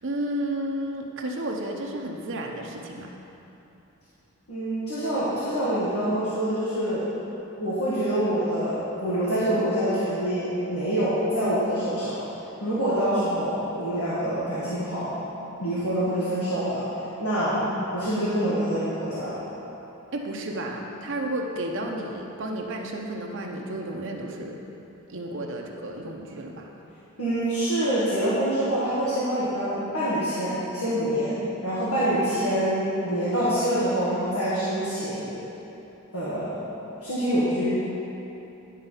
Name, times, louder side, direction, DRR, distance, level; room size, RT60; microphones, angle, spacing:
voice 1, 0.0-3.1 17.4-17.7 20.1-24.6 25.1-26.7 32.1-32.2, right 1 dB, 60° right, 1 dB, 0.8 m, -32 dB
voice 2, 4.5-7.1 7.6-12.2 12.6-15.1 15.6-16.8 17.2-17.6 17.9-19.4 27.2-35.4 36.1-36.6 37.0-37.7, right 1 dB, 90° left, -12 dB, 1.9 m, -26 dB
10.5 x 4.6 x 5.6 m, 3.0 s
head